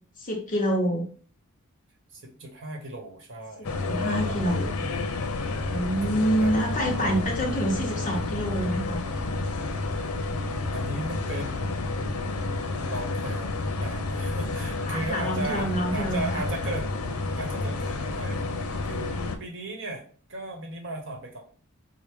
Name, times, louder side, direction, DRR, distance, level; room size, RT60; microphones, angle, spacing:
voice 1, 0.2-1.0 3.6-4.9 5.7-9.0 14.9-16.4, equal, 35° left, 0 dB, 0.8 m, -27 dB
voice 2, 2.1-3.7 4.3-4.4 6.4-7.3 10.7-12.0 12.8-16.9 17.3-18.5 18.8-21.4, right 2 dB, 60° right, 2 dB, 1.0 m, -36 dB
sound 1, 3.6-19.4, left 3 dB, 85° left, 0.6 m, -30 dB
4.8 x 2.0 x 3.5 m, 0.43 s
head